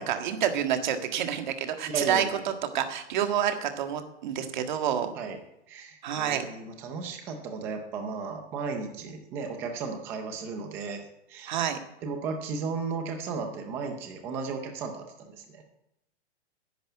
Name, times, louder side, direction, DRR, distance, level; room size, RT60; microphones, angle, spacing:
voice 1, 0.0-2.2 2.7-5.1 6.0-6.4 11.5-11.8, right 9 dB, 40° right, 6 dB, 1.8 m, -28 dB
voice 2, 1.8-2.4 5.2-5.4 5.7-11.0 11.3-11.6 12.0-15.6, right 5 dB, 5° right, 5 dB, 0.5 m, -35 dB
11.0 x 10.0 x 9.0 m, 0.85 s
hypercardioid pair, 170°, 35 cm